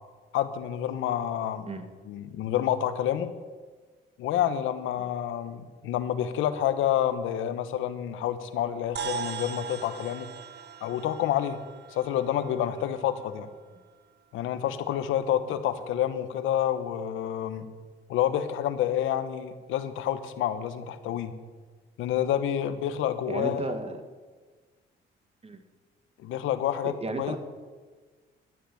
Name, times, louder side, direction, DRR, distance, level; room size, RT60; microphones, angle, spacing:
voice 1, 0.3-1.7 2.0-3.3 4.2-10.3 10.8-11.6 11.9-13.5 14.3-17.7 18.1-21.3 22.0-23.8 26.2-27.4, left 10 dB, 90° left, 11 dB, 1.2 m, -28 dB
sound 1, 9.0-13.6, right 7 dB, 55° right, 1.2 m, -39 dB
voice 2, 23.3-24.0 25.4-25.6 27.0-27.4, right 3 dB, 30° right, 8 dB, 2.0 m, -33 dB
12.5 x 10.5 x 9.4 m, 1.4 s
cardioid pair, 90°, 20 cm